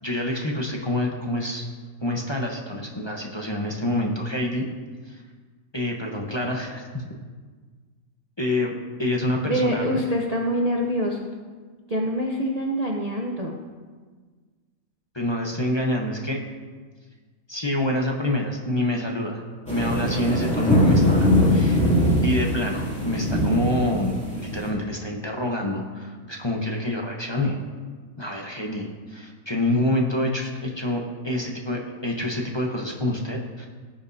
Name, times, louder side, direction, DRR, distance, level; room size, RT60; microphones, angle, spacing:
voice 1, 0.0-1.6 2.0-4.7 5.1-5.2 5.7-7.0 8.4-8.7 9.0-9.8 15.1-16.4 17.5-19.4 19.7-21.8 22.2-27.6 28.2-33.7, left 1 dB, 20° left, 0 dB, 0.8 m, -27 dB
voice 2, 9.4-11.3 11.9-13.6, equal, 35° right, -1 dB, 0.7 m, -25 dB
sound 1, 19.7-24.7, left 1 dB, 5° left, 2.6 m, -21 dB
18.0 x 7.1 x 2.7 m, 1.5 s
omnidirectional pair, 1.5 m